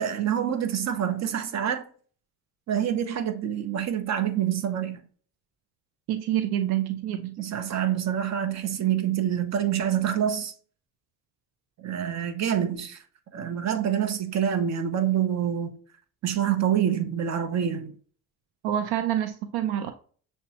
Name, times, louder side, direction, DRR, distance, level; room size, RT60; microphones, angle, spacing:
voice 1, 0.0-1.8 2.7-5.0 7.1-10.5 11.8-13.0 13.3-15.8 16.2-17.9, right 9 dB, 45° right, 0.8 m, -26 dB
voice 2, 6.1-7.2 18.6-19.9, right 11 dB, 80° right, 0.6 m, -27 dB
6.7 x 2.2 x 2.9 m
supercardioid pair, 85°, 38 cm